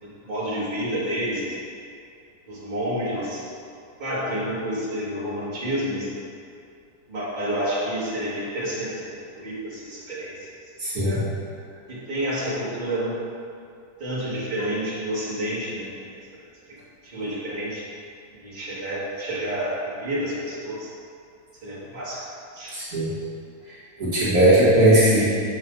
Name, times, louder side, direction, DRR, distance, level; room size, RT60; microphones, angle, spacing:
voice 1, 0.0-1.6 2.5-3.4 4.0-6.1 7.1-10.4 11.0-11.2 11.9-13.2 14.0-16.2 17.0-17.9 18.4-20.9 21.6-22.2 22.5-22.8, equal, 30° right, -9 dB, 2.0 m, -29 dB
voice 2, 10.8-11.2 22.7-23.1 23.7-25.3, right 1 dB, 65° right, -9 dB, 1.9 m, -19 dB
7.4 x 5.9 x 4.0 m, 2.5 s
omnidirectional pair, 1.8 m